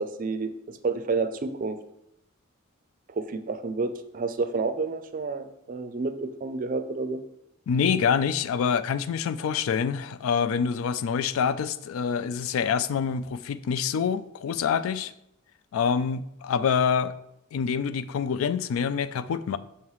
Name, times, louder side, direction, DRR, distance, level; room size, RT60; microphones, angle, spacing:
voice 1, 0.0-1.8 3.1-7.2, right 4 dB, 40° right, 0.4 m, -30 dB
voice 2, 7.7-15.1 15.7-17.1 17.5-19.6, left 6 dB, 80° left, 0.3 m, -26 dB
5.7 x 3.1 x 5.5 m
head